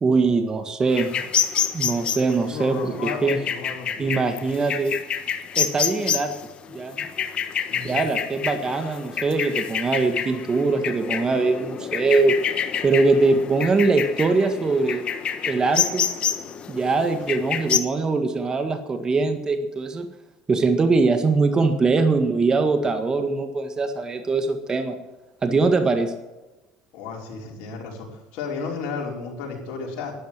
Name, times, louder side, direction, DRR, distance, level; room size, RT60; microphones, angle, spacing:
voice 1, 0.0-1.1 1.7-3.4 4.0-5.0 5.6-6.3 6.7-7.0 7.8-12.4 12.8-15.0 15.5-16.0 16.7-20.1 20.5-25.0 25.4-26.1, right 3 dB, 30° right, 6 dB, 1.7 m, -22 dB
sound 1, 0.9-17.8, left 8 dB, 45° left, 1.5 m, -28 dB
voice 2, 2.5-4.2 7.7-8.1 26.9-30.1, left 5 dB, 70° left, -1 dB, 5.3 m, -33 dB
12.5 x 11.5 x 7.6 m, 1.1 s
supercardioid pair, 90°, 3 cm